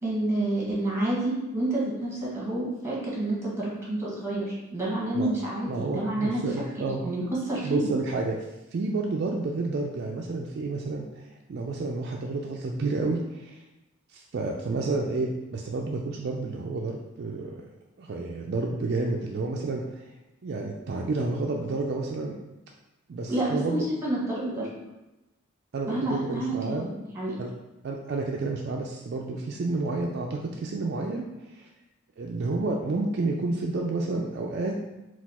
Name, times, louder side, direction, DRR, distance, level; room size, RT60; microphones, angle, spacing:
voice 1, 0.0-6.4 6.8-7.9 23.3-24.7 25.9-27.3, right 1 dB, 10° right, -6 dB, 1.2 m, -29 dB
voice 2, 5.7-7.0 7.6-8.4 8.7-13.6 14.1-17.6 18.0-20.1 20.4-22.4 23.1-23.9 25.7-26.9 27.4-27.5 27.8-31.7 32.2-34.7, right 3 dB, 50° right, 0 dB, 0.3 m, -30 dB
4.1 x 2.4 x 4.1 m, 0.98 s
head